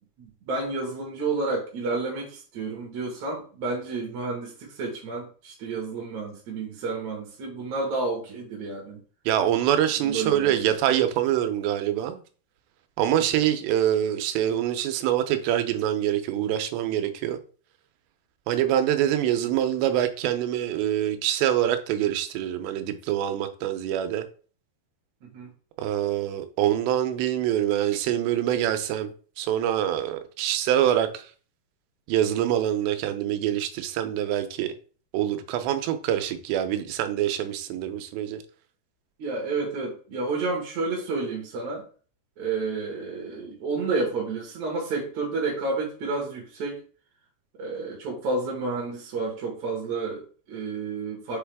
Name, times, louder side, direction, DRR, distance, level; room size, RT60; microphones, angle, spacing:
voice 1, 0.2-9.0 10.0-10.7 13.3-13.5 25.2-25.5 39.2-41.9 42.4-46.8 47.6-51.4, right 3 dB, 55° right, 2.3 m, -30 dB
voice 2, 9.3-12.2 13.0-17.4 18.5-24.3 25.8-31.3 32.1-34.7 35.1-38.4, right 11 dB, 85° right, 2.9 m, -25 dB
6.8 x 4.7 x 3.5 m
omnidirectional pair, 4.9 m